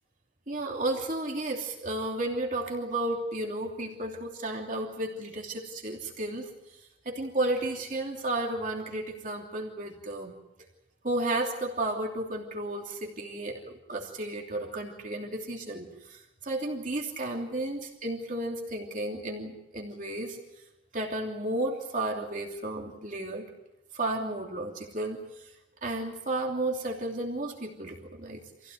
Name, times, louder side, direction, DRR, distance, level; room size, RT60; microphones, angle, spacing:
voice 1, 0.5-6.5 7.0-10.3 11.0-20.4 20.9-23.5 23.9-25.5 25.8-28.7, right 2 dB, 40° right, 0 dB, 3.0 m, -33 dB
26.5 x 16.5 x 9.4 m, 0.93 s
head